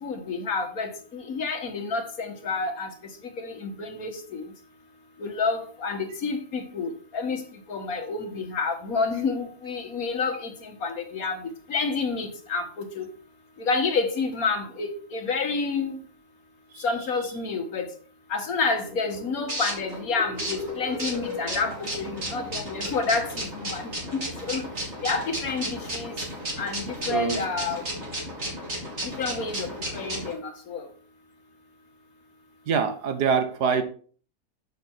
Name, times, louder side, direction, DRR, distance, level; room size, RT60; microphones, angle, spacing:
voice 1, 0.0-2.9 3.4-4.5 5.2-7.4 7.7-13.1 13.6-16.0 16.8-17.9 18.3-24.6 25.0-26.2 26.6-27.8 29.0-30.9, left 4 dB, 65° left, 1.8 m, -29 dB
sound 1, 18.7-30.3, equal, 45° right, 3.1 m, -34 dB
voice 2, 27.1-27.4 32.7-33.8, right 6 dB, 90° right, 1.8 m, -24 dB
7.3 x 6.5 x 4.4 m
omnidirectional pair, 1.7 m